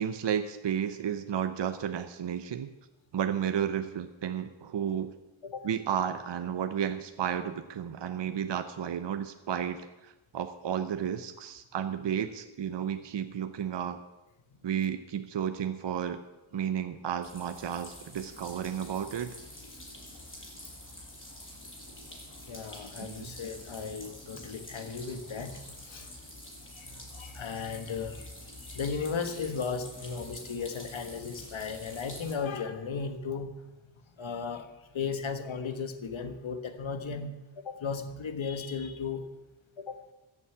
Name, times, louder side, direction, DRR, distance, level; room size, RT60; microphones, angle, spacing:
voice 1, 0.0-2.7 3.1-5.1 5.6-14.0 14.6-16.2 16.5-19.3 23.0-23.3, right 8 dB, 60° right, 9 dB, 0.8 m, -32 dB
sound 1, 17.2-32.4, left 1 dB, 25° left, 6.3 m, -47 dB
voice 2, 22.5-26.1 26.7-33.6 33.9-39.3 39.8-40.0, left 5 dB, 70° left, 8 dB, 1.5 m, -36 dB
14.0 x 7.1 x 8.7 m, 1.0 s
wide cardioid pair, 80°, 48 cm